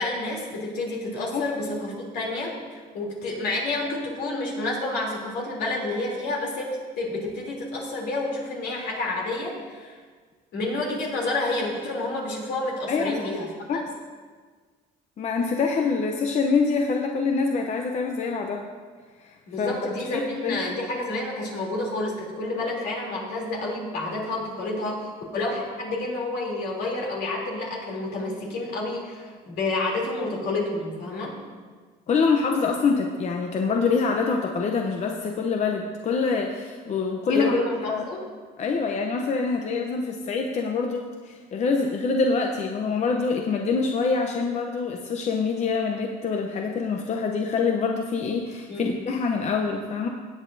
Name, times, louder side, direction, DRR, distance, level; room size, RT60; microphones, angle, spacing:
voice 1, 0.0-10.0 10.5-13.8 19.5-31.4 37.3-38.2 48.7-48.9, left 2 dB, 75° left, -2 dB, 3.2 m, -29 dB
voice 2, 12.9-13.2 13.7-13.8 15.2-18.6 19.6-20.6 32.1-37.6 37.9-38.0 38.6-50.1, left 4 dB, 45° left, 2 dB, 0.8 m, -25 dB
17.5 x 8.5 x 2.7 m, 1.5 s
cardioid pair, 110°, 17 cm